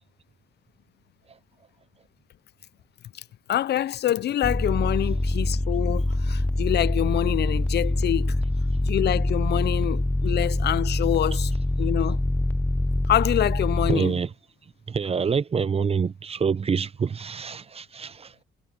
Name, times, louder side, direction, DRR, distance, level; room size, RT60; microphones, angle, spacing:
voice 1, 3.5-8.4 8.8-11.5 11.8-12.2 13.1-14.2, left 12 dB, 55° left, 0.5 m, -26 dB
sound 1, 4.4-14.0, left 1 dB, 5° left, 0.7 m, -24 dB
voice 2, 13.9-14.3 14.9-18.3, right 6 dB, 30° right, 0.7 m, -26 dB
cardioid pair, 90°, 20 cm